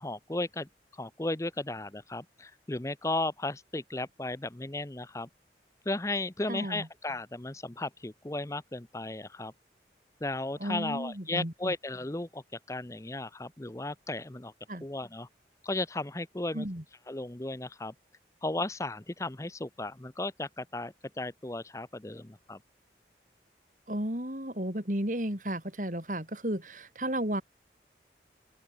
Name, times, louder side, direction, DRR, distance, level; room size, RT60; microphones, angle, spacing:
voice 1, 0.0-5.3 5.9-9.5 10.2-12.4 12.7-14.5 14.8-15.3 15.6-16.7 17.1-17.9 18.4-22.6, left 2 dB, 15° left, 0.7 m, -35 dB
voice 2, 6.5-6.9 10.6-11.7 14.7-14.8 16.5-16.8 23.9-27.4, right 1 dB, 45° right, 4.0 m, -33 dB
open air
head